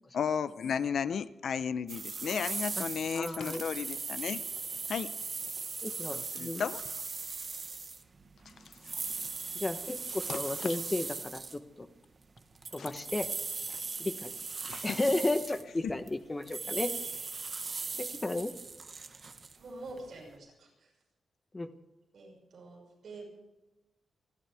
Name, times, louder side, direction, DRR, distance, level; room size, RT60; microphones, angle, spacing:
voice 1, 0.1-4.4 4.9-5.1 6.1-6.8 8.8-9.2 10.3-10.8 12.8-12.9 13.7-13.8 14.7-15.0 15.8-15.9, left 7 dB, 60° left, 14 dB, 0.7 m, -34 dB
sound 1, 1.9-11.6 12.4-16.1 16.4-20.3, right 4 dB, 35° right, 1.3 m, -39 dB
voice 2, 3.1-3.6 5.8-6.6 9.5-11.9 12.7-13.3 14.0-14.3 14.8-16.9 18.0-18.5 21.5-21.7, left 2 dB, 15° left, 9 dB, 1.1 m, -33 dB
voice 3, 19.6-20.9 22.1-23.2, right 2 dB, 55° right, -1 dB, 6.1 m, -47 dB
29.5 x 12.0 x 3.5 m, 1.0 s
wide cardioid pair, 155°, 0 cm